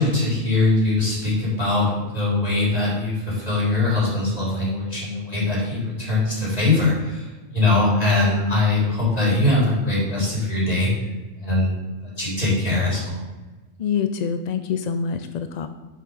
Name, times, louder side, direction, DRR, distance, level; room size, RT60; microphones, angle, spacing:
voice 1, 0.0-10.9 11.4-11.7 12.0-13.2, left 2 dB, 30° left, -6 dB, 3.6 m, -21 dB
voice 2, 13.8-15.7, left 6 dB, 60° left, 8 dB, 0.4 m, -25 dB
7.4 x 5.6 x 6.2 m, 1.2 s
omnidirectional pair, 1.3 m